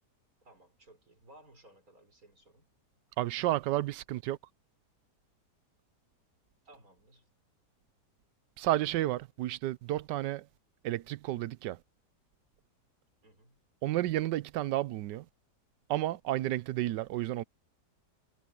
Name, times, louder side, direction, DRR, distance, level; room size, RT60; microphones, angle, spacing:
voice 1, 0.4-2.7 6.6-7.3 13.2-13.6, right 1 dB, 55° right, 6.6 m, -59 dB
voice 2, 3.2-4.4 8.6-10.4 10.8-11.8 13.8-15.2 15.9-17.4, right 15 dB, 90° right, 1.3 m, -31 dB
omnidirectional pair, 1.8 m